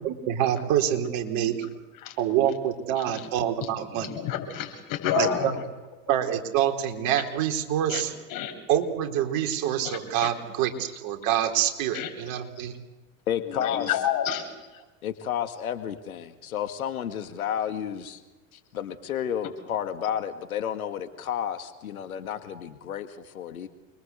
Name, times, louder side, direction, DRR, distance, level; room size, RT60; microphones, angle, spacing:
voice 1, 0.0-1.6 2.2-4.1 5.2-5.5 6.1-8.1 8.7-12.7, right 10 dB, 55° right, 6 dB, 3.8 m, -26 dB
voice 2, 4.0-5.6 7.9-8.0 8.3-8.5 10.2-10.3 11.9-12.1 13.5-14.5, left 9 dB, 50° left, 4 dB, 7.4 m, -29 dB
voice 3, 13.3-13.9 15.0-18.2 18.5-23.7, left 9 dB, 85° left, 9 dB, 2.0 m, -31 dB
29.0 x 22.5 x 8.3 m, 1.1 s
hypercardioid pair, 90°, 42 cm